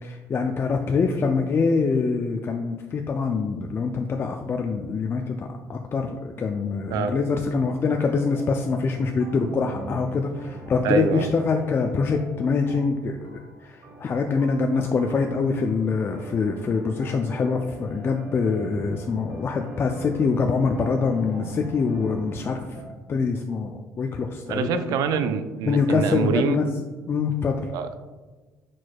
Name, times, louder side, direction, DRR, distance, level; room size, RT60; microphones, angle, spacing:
voice 1, 0.0-22.8 23.1-25.0 25.7-26.7 27.1-27.7, left 4 dB, 35° left, 3 dB, 0.3 m, -25 dB
sound 1, 5.8-6.2 6.9-22.9, right 1 dB, 55° right, 1.1 m, -42 dB
voice 2, 10.8-11.3 24.5-26.6 27.7-28.0, right 6 dB, 75° right, 9 dB, 0.4 m, -25 dB
4.6 x 4.3 x 2.3 m, 1.3 s
supercardioid pair, 80°, 7 cm